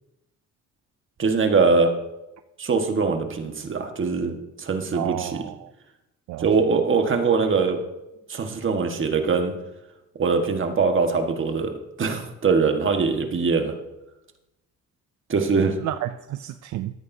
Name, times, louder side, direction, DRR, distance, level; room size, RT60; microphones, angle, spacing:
voice 1, 1.2-1.9 2.6-5.5 6.4-7.8 8.3-9.5 10.2-13.7 15.3-15.8, right 4 dB, 40° right, 1.5 m, -22 dB
voice 2, 4.9-5.7 6.3-6.5 15.8-17.0, right 13 dB, 70° right, 0.5 m, -31 dB
13.5 x 9.9 x 2.7 m
cardioid pair, 90°, 30 cm